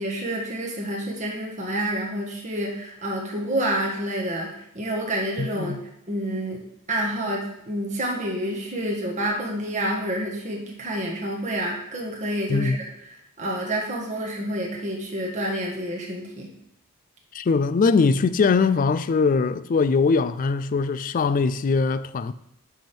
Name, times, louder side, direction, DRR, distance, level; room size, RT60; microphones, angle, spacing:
voice 1, 0.0-6.6 6.9-16.5, right 1 dB, 35° right, 1.6 m, -28 dB
voice 2, 5.4-5.8 12.5-12.8 17.3-22.3, left 4 dB, 40° left, 0.3 m, -21 dB
10.0 x 3.5 x 6.0 m
head